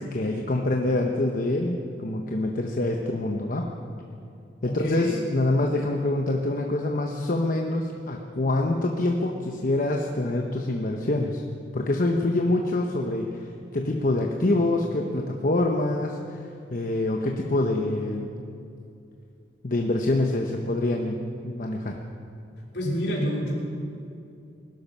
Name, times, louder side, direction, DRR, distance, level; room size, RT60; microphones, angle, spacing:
voice 1, 0.0-3.7 4.6-11.4 11.7-18.3 19.6-21.2 21.4-22.0, left 2 dB, 50° left, 2 dB, 0.9 m, -26 dB
voice 2, 4.6-5.2 22.7-23.5, equal, 70° left, -3 dB, 3.5 m, -28 dB
20.0 x 12.0 x 5.5 m, 2.5 s
head